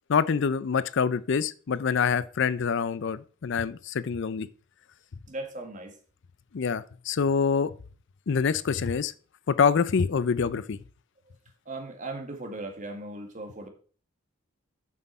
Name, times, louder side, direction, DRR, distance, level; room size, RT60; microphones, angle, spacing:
voice 1, 0.1-4.5 6.5-7.7 8.3-9.1 9.5-10.8, left 6 dB, 60° left, 0.4 m, -25 dB
voice 2, 5.3-6.0 11.7-13.7, right 2 dB, 40° right, 1.8 m, -37 dB
7.4 x 6.1 x 5.4 m
head